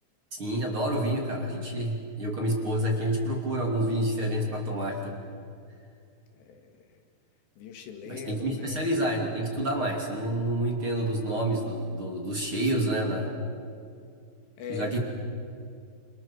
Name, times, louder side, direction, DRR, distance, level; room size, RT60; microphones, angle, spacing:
voice 1, 0.3-5.1 8.1-13.3 14.7-15.0, right 1 dB, 35° right, 0 dB, 3.0 m, -28 dB
voice 2, 6.3-7.0 7.6-8.8 14.6-15.0, left 7 dB, 75° left, 5 dB, 4.1 m, -41 dB
28.0 x 27.5 x 7.2 m, 2.4 s
omnidirectional pair, 5.0 m